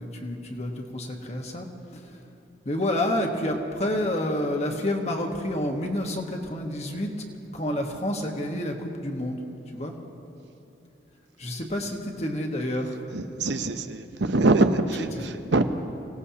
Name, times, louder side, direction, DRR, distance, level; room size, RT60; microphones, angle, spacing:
voice 1, 0.0-2.3 2.6-7.3 7.5-10.0 11.4-13.1, left 1 dB, 35° left, 2 dB, 1.4 m, -29 dB
voice 2, 13.1-15.6, right 2 dB, 70° right, 8 dB, 0.7 m, -24 dB
26.0 x 17.5 x 2.9 m, 2.8 s
head